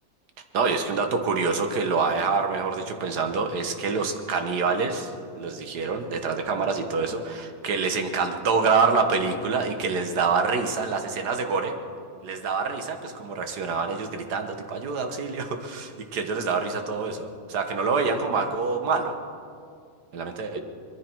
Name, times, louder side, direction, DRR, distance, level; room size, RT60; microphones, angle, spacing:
voice 1, 0.5-5.1 5.4-11.7 12.2-19.2 20.1-20.6, right 4 dB, 60° right, 6 dB, 1.6 m, -26 dB
21.0 x 14.5 x 4.6 m, 2.3 s
omnidirectional pair, 2.1 m